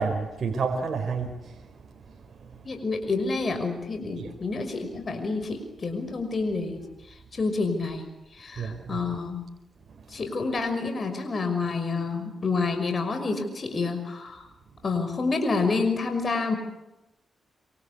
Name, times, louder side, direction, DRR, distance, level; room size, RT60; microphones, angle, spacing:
voice 1, 0.0-1.9 2.3-2.5 4.2-4.3 8.6-9.0 10.1-10.2, right 4 dB, 55° right, 3 dB, 4.4 m, -30 dB
voice 2, 2.6-6.8 7.1-8.1 8.3-9.4 10.1-14.4 14.8-16.6, left 3 dB, 45° left, 6 dB, 5.8 m, -28 dB
26.5 x 26.0 x 8.5 m, 0.93 s
cardioid pair, 70°, 0 cm